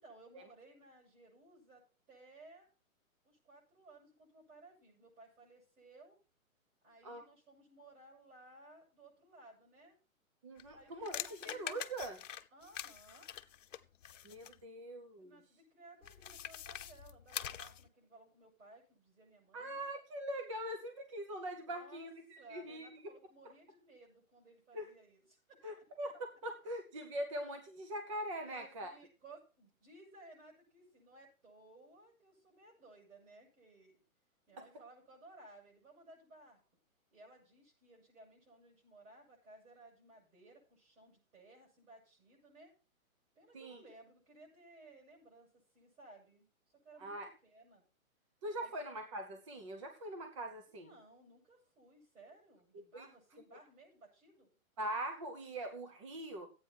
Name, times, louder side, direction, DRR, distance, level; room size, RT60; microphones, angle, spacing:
voice 1, 0.0-2.7 3.2-6.2 6.8-10.0 10.7-11.9 12.5-13.3 15.2-19.8 21.6-22.1 22.4-26.1 28.4-34.0 34.5-36.6 37.1-42.7 43.4-46.5 46.7-47.1 47.4-47.8 48.6-48.7 50.7-54.5, right 2 dB, 70° right, -4 dB, 7.1 m, -59 dB
voice 2, 10.4-12.2 14.2-15.4 19.5-23.0 24.7-24.9 25.6-28.9 34.6-34.7 43.5-43.8 47.0-47.3 48.4-50.9 52.7-53.0 54.8-56.5, right 1 dB, 20° right, 5 dB, 0.8 m, -42 dB
sound 1, 10.6-14.6 16.0-17.9, left 9 dB, 60° left, 0.9 m, -45 dB
12.5 x 8.8 x 4.5 m, 0.34 s
hypercardioid pair, 170°, 42 cm